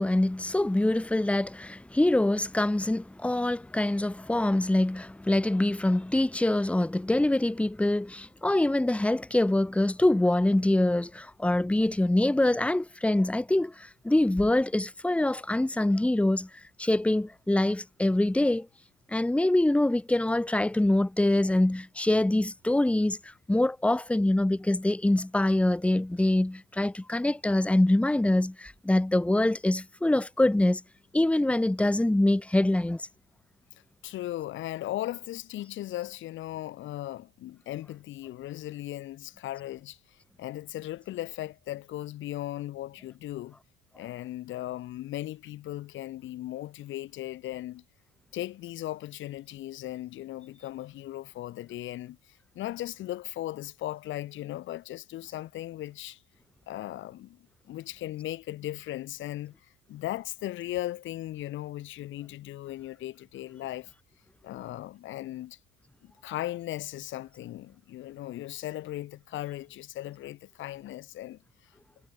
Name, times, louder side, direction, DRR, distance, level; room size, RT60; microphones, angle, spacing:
voice 1, 0.0-16.5 16.8-18.7 19.1-30.8 31.1-33.1, left 1 dB, 5° left, 2.6 m, -25 dB
voice 2, 34.0-43.6 44.0-47.8 48.3-56.2 56.7-59.5 59.9-63.9 64.4-65.6 66.0-71.4, left 14 dB, 65° left, 3.8 m, -37 dB
cardioid pair, 135°, 21 cm